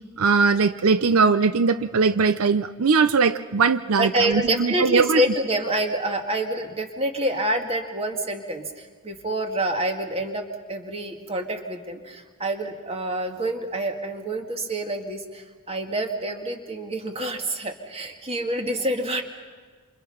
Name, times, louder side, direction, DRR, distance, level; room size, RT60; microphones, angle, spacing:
voice 1, 0.2-5.2 18.7-18.8, right 4 dB, 80° right, 12 dB, 0.6 m, -20 dB
voice 2, 4.0-19.2, right 1 dB, 25° right, 4 dB, 2.0 m, -27 dB
27.5 x 27.0 x 5.7 m, 1.5 s
head